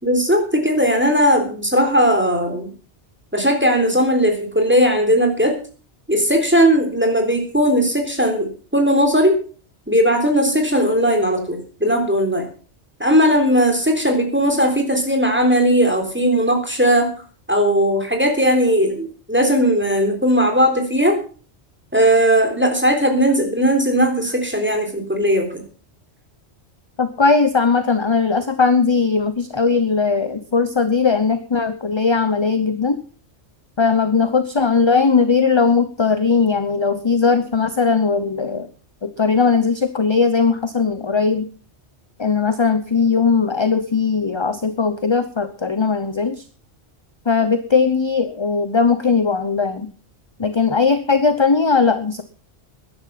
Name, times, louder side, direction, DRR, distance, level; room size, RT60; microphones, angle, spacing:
voice 1, 0.0-2.7 3.3-5.5 6.1-9.4 9.9-12.5 13.0-17.1 17.5-21.2 21.9-25.6, equal, 10° right, 3 dB, 3.7 m, -17 dB
voice 2, 27.0-33.0 33.8-38.7 39.0-41.5 42.2-46.4 47.3-49.9 50.4-52.2, left 5 dB, 25° left, 11 dB, 0.9 m, -18 dB
13.5 x 10.5 x 5.9 m, 0.40 s
omnidirectional pair, 1.2 m